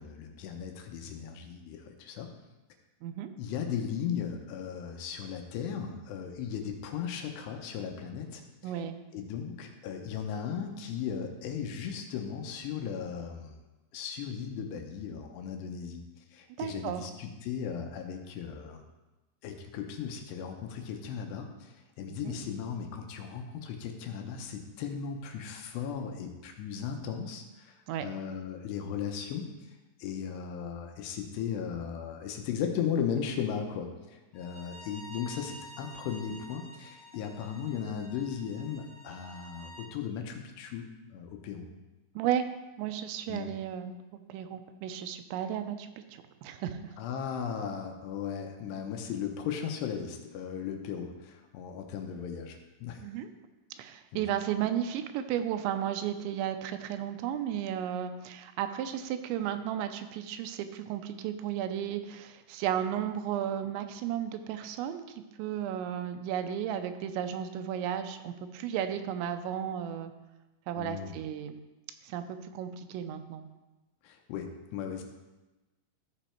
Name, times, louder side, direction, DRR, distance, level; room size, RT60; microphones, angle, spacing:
voice 1, 0.0-2.3 3.4-8.7 9.1-13.6 13.9-18.9 19.4-29.5 30.0-41.7 43.3-43.5 47.0-53.0 54.1-54.2 70.7-71.2 74.0-75.0, left 7 dB, 80° left, 4 dB, 2.8 m, -37 dB
voice 2, 8.6-9.0 16.6-17.0 22.1-22.4 27.9-28.1 42.2-42.5 42.8-46.8 53.0-53.3 53.8-65.0 65.4-70.1 70.7-71.6 72.0-73.5, right 10 dB, 85° right, 9 dB, 2.9 m, -34 dB
Bowed string instrument, 34.3-39.9, right 1 dB, 20° left, 0.7 m, -50 dB
14.0 x 5.1 x 4.4 m, 1.1 s
omnidirectional pair, 5.1 m